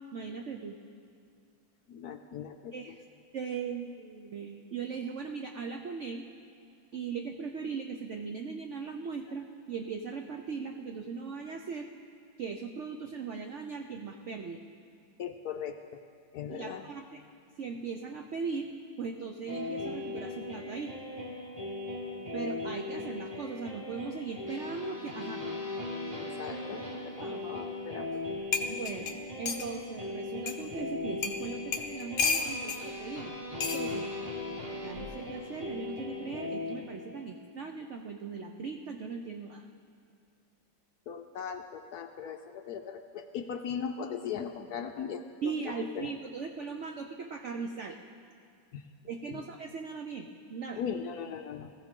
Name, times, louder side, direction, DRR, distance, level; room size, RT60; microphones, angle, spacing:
voice 1, 0.1-0.8 2.7-3.0 3.3-6.2 6.9-11.9 12.4-14.6 16.5-17.2 17.6-18.7 19.0-20.9 22.3-25.4 27.2-27.5 28.7-29.1 29.4-33.3 33.7-34.1 34.7-39.6 45.4-48.0 49.1-50.8, right 5 dB, 80° right, 4 dB, 0.6 m, -39 dB
voice 2, 1.9-2.7 15.2-15.8 16.3-16.8 26.2-26.8 27.2-28.1 41.1-45.2 46.0-46.1 48.7-48.8 49.3-49.4 50.8-51.7, left 7 dB, 70° left, 6 dB, 0.9 m, -38 dB
sound 1, 19.5-37.2, left 2 dB, 15° right, 2.7 m, -38 dB
sound 2, 28.1-28.2 28.5-29.7 30.5-30.6 31.2-31.4 31.7-32.8 33.6-33.8 34.9-35.2, left 4 dB, 50° left, 0.6 m, -31 dB
20.0 x 15.0 x 3.7 m, 2.4 s
omnidirectional pair, 2.1 m